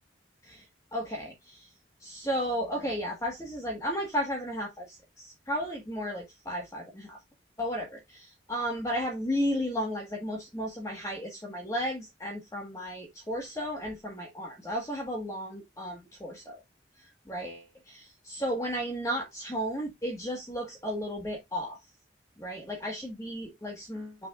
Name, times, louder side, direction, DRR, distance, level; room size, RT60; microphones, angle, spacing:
voice 1, 0.9-1.7 2.0-7.2 7.6-16.6 17.3-21.8 22.4-24.3, equal, 15° left, 1.5 m, -34 dB
7.0 x 6.1 x 2.4 m
head